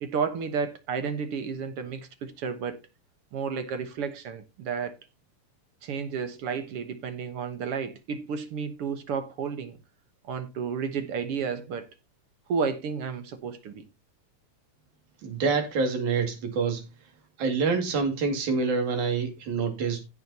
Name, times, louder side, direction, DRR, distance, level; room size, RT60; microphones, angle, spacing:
voice 1, 0.0-2.8 3.3-5.0 5.8-9.8 10.3-11.9 12.5-13.9, right 6 dB, 60° right, 1.8 m, -32 dB
voice 2, 15.2-16.9 17.4-20.1, right 4 dB, 85° right, 3.8 m, -26 dB
16.0 x 6.3 x 2.8 m
omnidirectional pair, 3.4 m